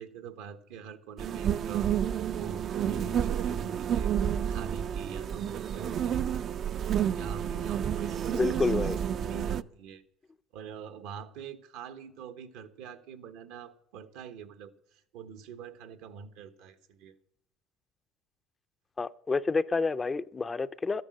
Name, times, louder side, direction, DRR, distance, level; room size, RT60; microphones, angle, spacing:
voice 1, 0.0-1.9 2.3-4.1 4.5-6.3 6.9-10.0 10.5-17.1, right 6 dB, 80° right, 8 dB, 1.2 m, -44 dB
sound 1, 1.2-9.6, right 9 dB, 45° right, 0.4 m, -30 dB
voice 2, 8.3-9.2 19.0-21.0, left 4 dB, 20° left, 13 dB, 0.4 m, -29 dB
13.5 x 10.0 x 6.4 m, 0.70 s
supercardioid pair, 110°, 0 cm